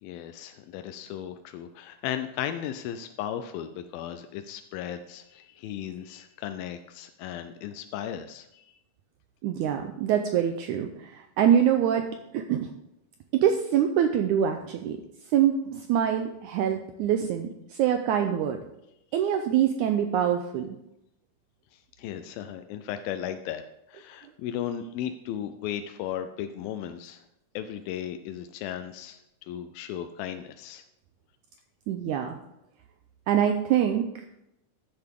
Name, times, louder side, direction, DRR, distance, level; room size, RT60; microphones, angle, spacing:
voice 1, 0.0-8.7 21.7-23.6 23.9-27.2 27.5-30.8, left 10 dB, 90° left, 9 dB, 2.4 m, -36 dB
voice 2, 9.4-12.1 12.3-12.7 13.3-15.0 15.3-18.6 19.1-20.7 31.9-32.4 33.3-34.2, right 9 dB, 85° right, 6 dB, 1.7 m, -25 dB
13.5 x 7.9 x 3.6 m, 0.84 s
omnidirectional pair, 4.1 m